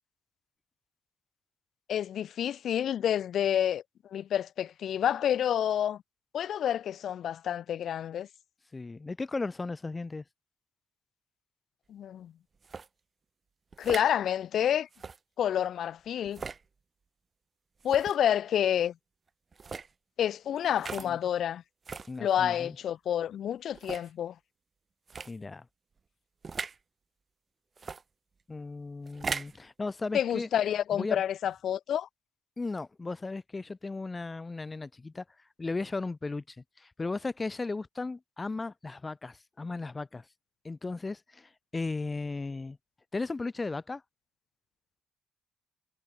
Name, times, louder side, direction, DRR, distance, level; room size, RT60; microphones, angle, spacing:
voice 1, 1.9-3.8 4.1-6.0 6.3-8.3 11.9-12.3 13.8-14.9 15.4-16.4 17.8-18.9 20.2-21.6 22.2-24.3 30.1-32.1, left 10 dB, 65° left, 0.4 m, -29 dB
voice 2, 8.7-10.2 21.0-21.2 22.1-22.8 25.3-25.7 28.5-30.5 30.9-31.2 32.6-35.2 35.6-40.3 40.6-42.8 43.1-44.0, left 3 dB, 25° left, 1.7 m, -36 dB
sound 1, 12.6-12.9 13.7-14.1 14.9-15.2 16.3-16.6 17.8-18.2 19.5-19.9 20.8-21.1 21.8-22.1 22.8-22.9 23.7-24.1 25.1-25.3 26.4-26.8 27.8-28.0 29.1-29.6, right 5 dB, 35° right, 1.4 m, -38 dB
cardioid pair, 90°, 0 cm